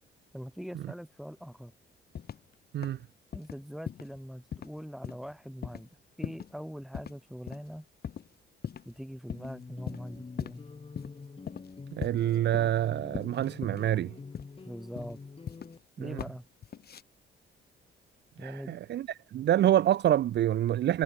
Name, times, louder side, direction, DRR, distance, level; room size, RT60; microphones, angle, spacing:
voice 1, 0.3-1.7 3.3-7.9 8.8-10.6 14.7-15.2 16.0-16.5 18.4-18.8, equal, ahead, 2.2 m, -42 dB
sound 1, 2.1-2.5 2.8-3.0 3.3-3.6 3.9-4.2 4.5-4.7 5.0-5.3 5.6-5.9 6.2-6.6 6.9-7.2 7.5-7.6 8.0-8.3 8.6-9.0 9.3-9.5 9.9-10.6 11.0-11.1 11.5-11.7 12.0-12.9 13.1-13.9 14.3-14.6 14.9-15.8 16.2-16.4 16.6-17.0, left 8 dB, 55° left, 2.6 m, -40 dB
sound 2, 9.4-15.8, left 4 dB, 30° left, 3.8 m, -46 dB
voice 2, 11.9-14.1 16.0-16.2 18.4-21.0, right 12 dB, 60° right, 0.6 m, -27 dB
cardioid pair, 90°, 20 cm